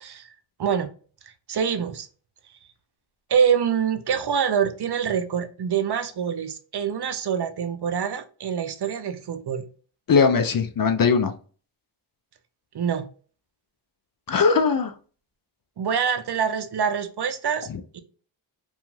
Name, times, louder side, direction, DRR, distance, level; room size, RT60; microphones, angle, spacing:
voice 1, 1.5-2.1 3.3-9.6 12.7-13.1 15.8-17.7 17.9-18.0, right 7 dB, 55° right, 0.6 m, -25 dB
voice 2, 10.1-11.3 14.3-14.9 17.7-17.8, left 5 dB, 45° left, 0.5 m, -20 dB
2.8 x 2.4 x 2.6 m
cardioid pair, 50°, 48 cm